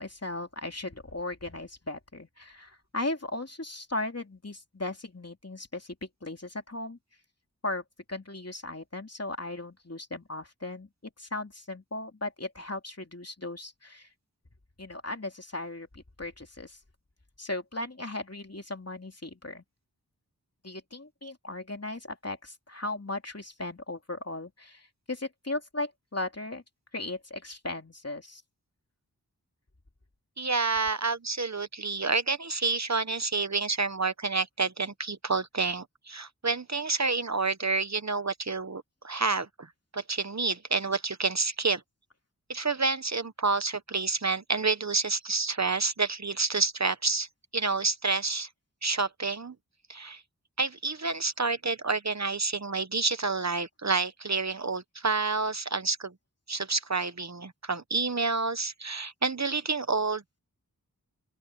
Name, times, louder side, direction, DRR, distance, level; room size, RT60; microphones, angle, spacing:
voice 1, 0.0-7.0 7.6-7.8 8.1-10.9 11.2-14.1 14.8-16.8 17.4-19.6 20.6-26.6 26.9-28.4, left 2 dB, 45° left, 3.1 m, -37 dB
voice 2, 30.4-39.7 39.9-41.8 42.5-47.3 47.5-48.5 48.8-49.5 49.9-50.2 50.6-56.1 56.5-60.2, right 4 dB, 50° right, 0.9 m, -29 dB
open air
wide cardioid pair, 50°, 35 cm